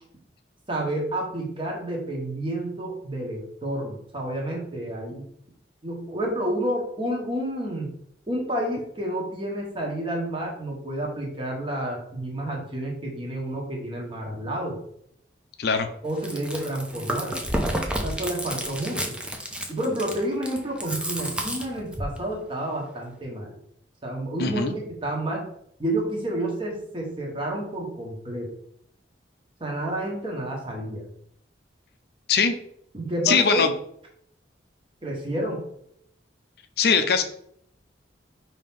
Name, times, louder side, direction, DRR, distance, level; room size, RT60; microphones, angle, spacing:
voice 1, 0.7-5.2 5.8-7.9 8.3-14.8 16.0-17.4 18.0-19.2 19.7-23.5 24.0-25.4 25.8-28.5 29.6-31.0 32.9-33.7 35.0-35.6, right 1 dB, 30° right, -1 dB, 1.1 m, -30 dB
Chewing mastication, 16.1-22.2, right 1 dB, 5° right, 0.5 m, -30 dB
voice 2, 24.4-24.7 32.3-32.6 33.3-33.7 36.8-37.2, left 5 dB, 55° left, 8 dB, 0.4 m, -21 dB
5.3 x 2.8 x 3.6 m, 0.69 s
head